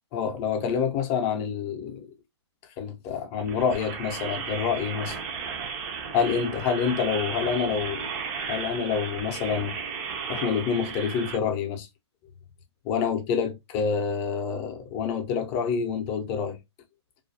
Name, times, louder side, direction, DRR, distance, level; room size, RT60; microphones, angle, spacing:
voice 1, 0.1-2.1 2.8-5.2 6.1-8.1 8.5-9.8 10.3-11.9 12.8-16.6, left 6 dB, 30° left, 0.6 m, -27 dB
sound 1, 3.4-11.4, right 6 dB, 35° right, 0.5 m, -34 dB
2.4 x 2.2 x 2.6 m
hypercardioid pair, 135°, 15 cm